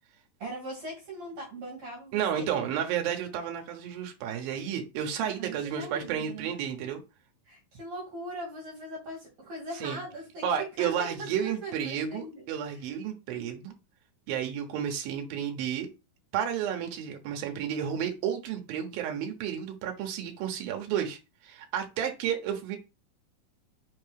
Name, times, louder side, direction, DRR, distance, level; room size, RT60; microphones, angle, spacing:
voice 1, 0.4-2.7 5.3-6.5 7.4-12.8, right 1 dB, 55° right, -3 dB, 3.2 m, -40 dB
voice 2, 2.1-7.0 9.8-10.0 10.4-13.7 14.3-15.9 16.3-22.8, right 9 dB, 85° right, 3 dB, 2.8 m, -32 dB
5.9 x 4.6 x 3.4 m, 0.27 s
omnidirectional pair, 4.1 m